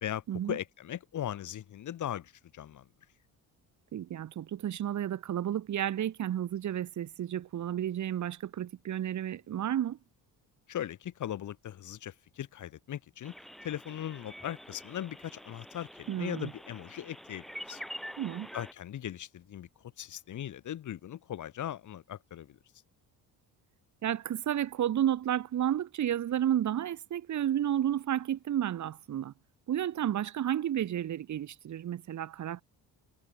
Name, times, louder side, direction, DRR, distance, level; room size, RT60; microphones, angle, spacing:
voice 1, 0.0-2.9 10.7-13.3 13.6-17.8 18.5-19.7 20.0-22.6, left 11 dB, 50° left, 1.8 m, -39 dB
voice 2, 3.9-10.0 16.1-16.5 18.2-18.5 24.0-29.3 29.7-32.6, right 11 dB, 50° right, 1.7 m, -31 dB
sound 1, 13.2-18.7, equal, ahead, 1.8 m, -46 dB
cardioid pair, 130°, 38 cm